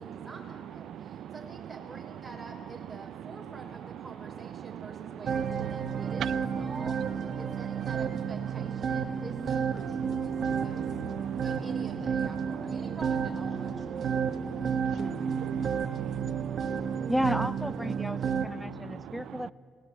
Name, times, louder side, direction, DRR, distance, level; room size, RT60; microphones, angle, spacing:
voice 1, 0.0-10.8 11.4-14.1, right 2 dB, 15° right, 6.1 m, -47 dB
voice 2, 0.9-1.3 4.7-5.1 5.6-6.0 9.1-9.2 10.1-11.4 12.6-12.7 14.0-17.1 18.5-19.1, right 10 dB, 75° right, 0.6 m, -43 dB
sound 1, 5.3-18.5, right 6 dB, 55° right, 1.6 m, -31 dB
voice 3, 17.1-19.5, equal, 5° left, 0.8 m, -32 dB
30.0 x 19.5 x 9.2 m
cardioid pair, 90°, 0 cm